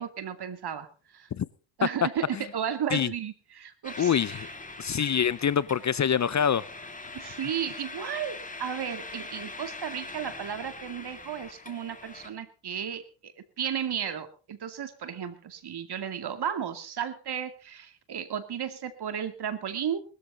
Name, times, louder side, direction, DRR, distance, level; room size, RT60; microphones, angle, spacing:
voice 1, 0.0-1.3 1.8-4.5 5.0-5.2 7.1-13.3 13.6-20.0, right 8 dB, 50° right, 2.4 m, -34 dB
sound 1, 3.8-12.3, left 3 dB, 15° left, 2.7 m, -42 dB
voice 2, 4.0-4.5 4.8-6.7, left 8 dB, 35° left, 0.7 m, -25 dB
19.5 x 13.5 x 4.0 m
cardioid pair, 90°, 49 cm